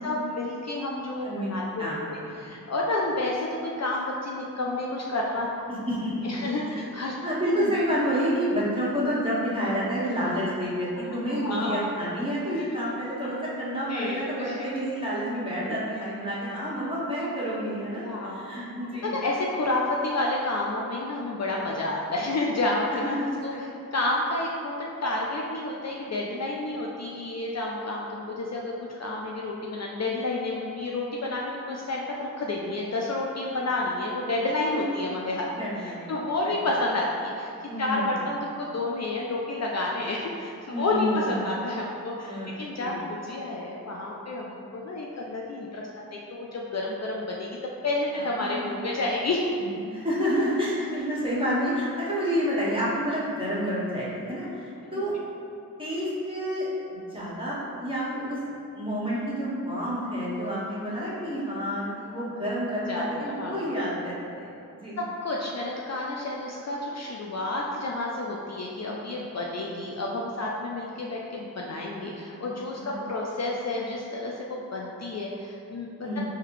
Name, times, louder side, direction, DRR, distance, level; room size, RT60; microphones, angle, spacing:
voice 1, 0.0-1.8 2.1-5.5 6.2-7.1 7.6-7.7 11.4-11.8 12.5-12.8 13.9-14.7 18.0-18.5 19.0-35.5 35.8-45.8 46.1-47.5 47.8-49.4 54.8-55.0 62.9-63.8 65.0-75.9, left 2 dB, 45° left, -2 dB, 0.4 m, -30 dB
voice 2, 1.8-2.4 5.7-6.3 6.6-6.7 7.2-19.1 22.9-23.6 34.7-34.9 35.5-36.1 36.4-36.5 37.7-38.1 40.7-41.4 42.3-43.0 48.1-48.9 49.7-55.1 55.8-58.4 58.7-65.0 72.2-73.1 76.0-76.2, equal, 15° right, -8 dB, 1.4 m, -29 dB
3.8 x 2.8 x 3.1 m, 2.5 s
cardioid pair, 40°, 37 cm